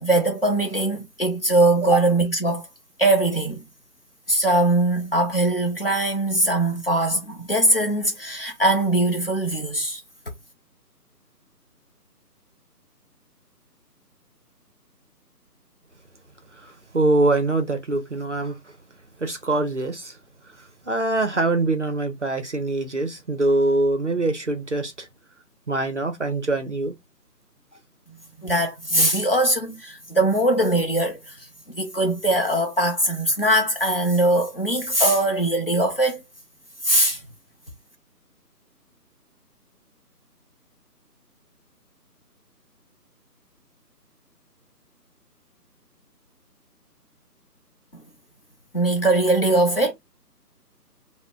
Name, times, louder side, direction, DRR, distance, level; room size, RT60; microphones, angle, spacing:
voice 1, 0.0-2.7 3.0-3.6 4.3-10.0 28.4-31.4 31.7-36.2 36.8-37.2 48.7-49.9, right 1 dB, 35° left, 0.6 m, -21 dB
voice 2, 16.6-18.6 19.2-20.2 20.9-25.1 25.7-26.9, right 2 dB, 50° right, 0.4 m, -23 dB
2.2 x 2.0 x 3.7 m
figure-of-eight pair, 160°, 48 cm